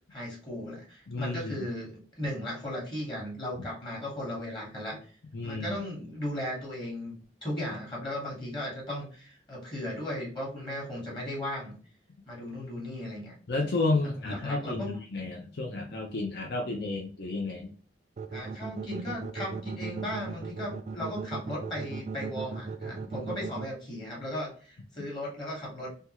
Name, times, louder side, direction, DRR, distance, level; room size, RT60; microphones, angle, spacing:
voice 1, 0.1-5.0 5.4-11.7 12.3-13.3 14.0-14.9 18.3-26.0, left 1 dB, 25° left, -3 dB, 1.1 m, -36 dB
voice 2, 1.1-1.7 5.3-5.8 13.5-17.7, left 2 dB, 60° left, -1 dB, 0.5 m, -31 dB
sound 1, 18.2-23.7, right 5 dB, 40° right, 0.3 m, -36 dB
3.3 x 2.3 x 2.8 m, 0.41 s
head